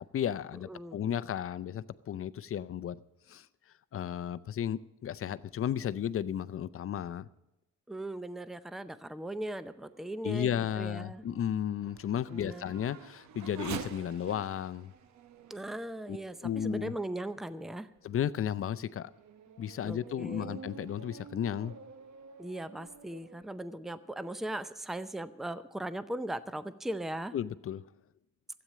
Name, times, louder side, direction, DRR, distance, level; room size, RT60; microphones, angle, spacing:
voice 1, 0.0-3.0 3.3-3.5 3.9-7.3 10.2-14.9 16.1-16.2 16.4-16.9 18.0-19.1 19.6-21.7 27.3-27.8, left 9 dB, 45° left, 16 dB, 0.6 m, -34 dB
voice 2, 0.7-1.0 7.9-11.2 12.3-12.7 15.5-17.9 19.8-20.6 22.4-27.3, right 1 dB, ahead, 13 dB, 0.6 m, -38 dB
Race car auto racing / Accelerating revving vroom, 9.4-17.3 18.0-18.1 18.7-23.4, right 7 dB, 65° right, 1.0 m, -48 dB
13.0 x 8.9 x 7.5 m, 0.92 s
cardioid pair, 90°, 30 cm